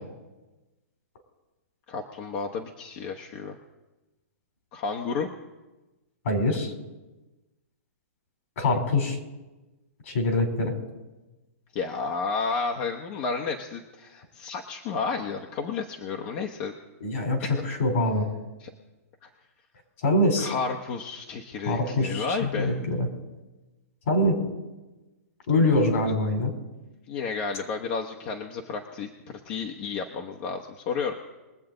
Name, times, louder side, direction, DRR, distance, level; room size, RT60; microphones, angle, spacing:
voice 1, 1.9-3.6 4.7-5.3 11.7-16.7 17.4-17.5 18.6-18.7 19.2-19.3 20.4-22.7 27.1-31.2, left 5 dB, 40° left, 2 dB, 1.1 m, -32 dB
voice 2, 6.3-6.7 8.6-9.2 10.1-10.7 17.0-18.3 20.0-20.5 21.7-23.1 24.1-24.4 25.5-26.5, left 1 dB, 60° left, 3 dB, 3.6 m, -24 dB
23.0 x 7.8 x 3.9 m, 1.1 s
hypercardioid pair, 145°, 8 cm